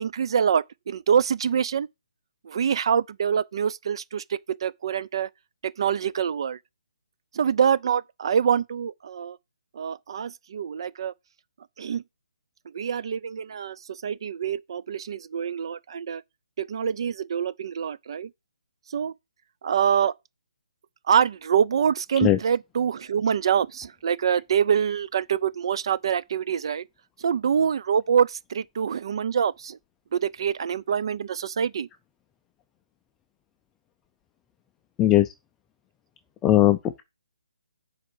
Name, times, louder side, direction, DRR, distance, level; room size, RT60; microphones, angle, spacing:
voice 1, 0.0-1.9 2.5-5.3 5.8-6.6 7.3-9.4 9.8-11.1 11.8-12.0 12.7-13.8 14.0-16.2 16.6-18.3 18.9-19.1 19.6-20.1 21.1-26.8 27.2-29.8 30.1-31.9, right 7 dB, 40° right, 0.5 m, -25 dB
voice 2, 36.4-37.0, left 13 dB, 10° left, 0.5 m, -19 dB
7.9 x 4.8 x 6.2 m
hypercardioid pair, 165°, 4 cm